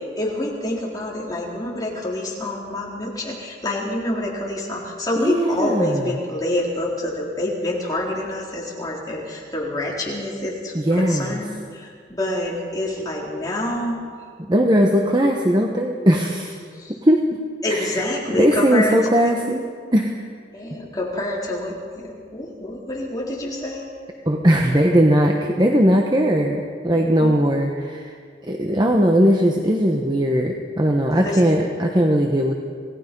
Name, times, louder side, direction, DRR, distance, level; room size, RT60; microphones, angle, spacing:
voice 1, 0.2-14.0 16.7-17.0 17.6-19.0 20.5-23.9 26.9-27.4 31.1-31.4, left 1 dB, 20° left, -4 dB, 3.9 m, -27 dB
voice 2, 5.2-6.1 10.7-11.4 14.5-16.5 17.0-17.2 17.7-18.0 18.4-19.6 19.9-20.2 24.3-28.2 28.4-32.5, equal, 25° right, 2 dB, 1.1 m, -19 dB
27.5 x 18.0 x 5.4 m, 2.1 s
head